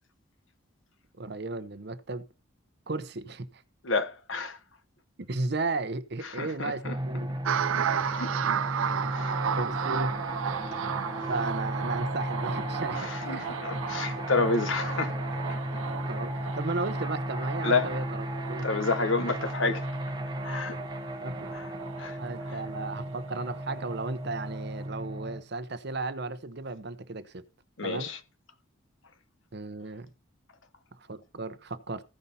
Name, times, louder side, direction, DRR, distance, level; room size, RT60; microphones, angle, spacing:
voice 1, 1.2-2.2 2.9-3.6 5.2-7.3 9.5-10.1 11.3-13.5 16.1-18.7 21.2-21.5 22.2-27.4 27.8-28.1 29.5-30.1 31.0-32.0, right 3 dB, 50° right, 0.7 m, -35 dB
voice 2, 3.8-4.6 6.4-6.9 7.7-8.3 9.1-9.4 13.0-15.2 17.6-17.9 18.6-19.8 20.4-20.9 21.5-21.6 22.0-22.2 27.8-28.2, left 3 dB, 65° left, 1.2 m, -29 dB
sound 1, 6.8-25.4, equal, 20° right, 1.0 m, -35 dB
sound 2, 7.5-24.1 24.4-24.9, right 8 dB, 75° right, 0.4 m, -35 dB
15.0 x 5.5 x 4.1 m
head